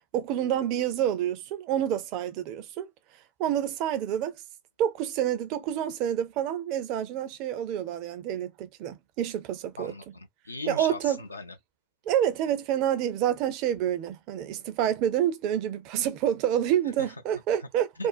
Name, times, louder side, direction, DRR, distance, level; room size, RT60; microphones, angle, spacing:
voice 1, 0.0-2.9 3.4-4.3 4.8-9.9 10.7-11.2 12.1-18.1, right 10 dB, 40° right, 0.5 m, -28 dB
voice 2, 9.8-11.6 17.0-17.1 18.0-18.1, left 3 dB, 80° left, 0.4 m, -39 dB
2.5 x 2.1 x 2.3 m
figure-of-eight pair, 90°, 0 cm